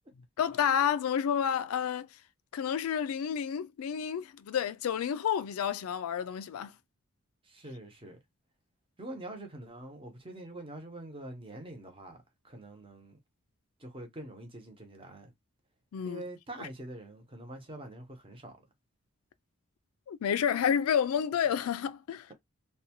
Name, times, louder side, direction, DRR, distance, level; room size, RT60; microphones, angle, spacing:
voice 1, 0.4-2.1 2.5-6.7 15.9-16.2 16.6-16.7 20.1-22.3, left 8 dB, 85° left, 0.3 m, -30 dB
voice 2, 7.4-8.2 9.0-12.2 12.4-13.2 13.8-15.3 16.0-18.6, right 1 dB, 25° right, 0.7 m, -45 dB
2.6 x 2.2 x 2.8 m
head